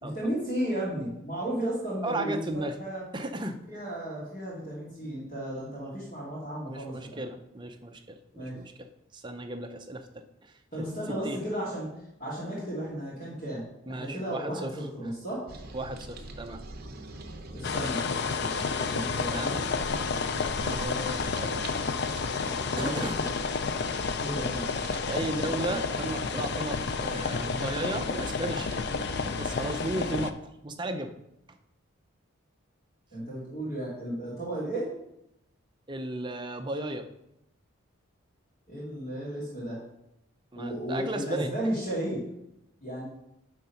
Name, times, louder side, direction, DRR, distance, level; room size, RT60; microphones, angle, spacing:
voice 1, 0.0-3.0 3.7-7.2 8.4-8.5 10.7-11.9 12.2-15.4 17.5-18.5 18.8-19.6 22.7-23.2 24.2-24.7 25.4-25.8 33.1-34.9 38.7-39.8 40.6-42.2 42.8-43.1, right 1 dB, 35° left, -8 dB, 2.4 m, -34 dB
voice 2, 2.0-2.8 3.1-3.6 6.6-10.9 11.2-11.4 13.9-14.7 15.7-16.6 19.3-19.7 20.6-21.6 22.8-23.2 25.1-29.0 29.4-30.4 30.6-31.1 35.9-37.1 40.5-41.5, right 2 dB, 20° right, 6 dB, 0.6 m, -35 dB
sound 1, 15.5-30.1, right 1 dB, 45° right, 0.9 m, -43 dB
sound 2, 17.6-30.3, left 5 dB, 50° left, 0.4 m, -30 dB
9.6 x 3.8 x 5.7 m, 0.83 s
head